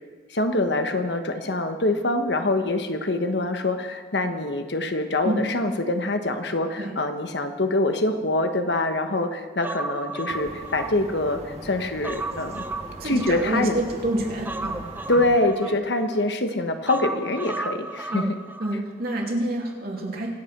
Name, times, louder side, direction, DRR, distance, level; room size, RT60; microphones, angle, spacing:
voice 1, 0.3-12.6 13.0-13.9 15.1-18.2, left 2 dB, 70° left, 7 dB, 1.3 m, -25 dB
Human voice, 9.6-11.4 11.8-13.8 14.5-16.2 16.9-18.8 19.1-19.2, right 2 dB, 10° right, 0.6 m, -34 dB
sound 1, 10.3-15.4, right 1 dB, 35° right, 1.8 m, -41 dB
voice 2, 13.0-14.8 15.1-15.2 15.6-15.8 18.1-18.3 18.6-20.3, right 1 dB, 60° right, -1 dB, 3.0 m, -28 dB
25.0 x 8.5 x 6.0 m, 1.5 s
head